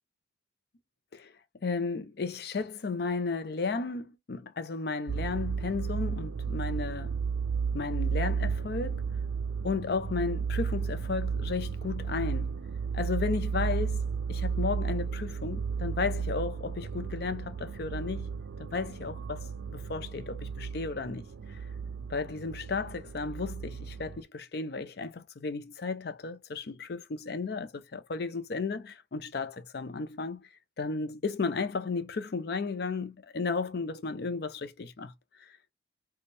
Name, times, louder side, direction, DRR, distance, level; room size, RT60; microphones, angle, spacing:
voice 1, 1.6-7.2 7.7-9.1 9.6-12.6 12.9-14.0 14.3-21.6 22.1-30.5 30.8-35.1, left 4 dB, 55° left, 0.5 m, -34 dB
sound 1, 5.1-24.2, right 6 dB, 85° right, 0.4 m, -33 dB
4.2 x 2.2 x 3.3 m
head